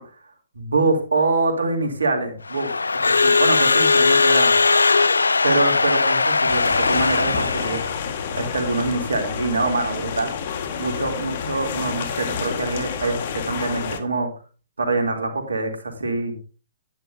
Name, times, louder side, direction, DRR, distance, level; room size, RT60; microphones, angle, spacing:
voice 1, 0.5-2.7 3.2-4.5 5.4-7.8 8.3-10.3 10.8-14.3 14.8-16.4, right 3 dB, 80° right, 3 dB, 3.0 m, -24 dB
Crowd / Alarm, 2.5-8.0, left 4 dB, 85° left, 0.4 m, -19 dB
sound 1, 6.5-14.0, left 7 dB, 50° left, 1.6 m, -29 dB
10.5 x 10.5 x 2.7 m, 0.35 s
figure-of-eight pair, 125°, 0 cm